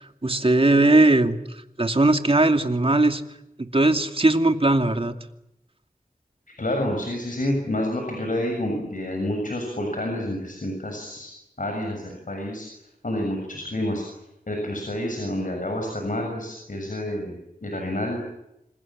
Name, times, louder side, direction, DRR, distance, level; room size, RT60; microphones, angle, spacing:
voice 1, 0.2-1.4 1.8-3.2 3.6-5.1, right 2 dB, 40° right, 6 dB, 2.6 m, -19 dB
voice 2, 6.6-12.7 13.0-14.0 14.5-18.2, left 1 dB, 65° left, 2 dB, 7.1 m, -29 dB
27.5 x 27.0 x 7.6 m, 0.86 s
wide cardioid pair, 60°, 15 cm